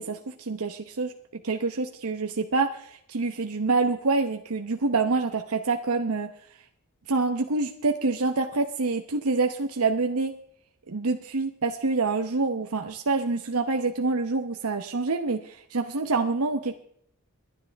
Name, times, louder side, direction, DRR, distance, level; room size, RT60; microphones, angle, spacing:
voice 1, 0.0-6.3 7.1-10.3 10.9-16.7, right 3 dB, 75° right, 6 dB, 0.9 m, -26 dB
22.5 x 10.0 x 3.5 m, 0.66 s
head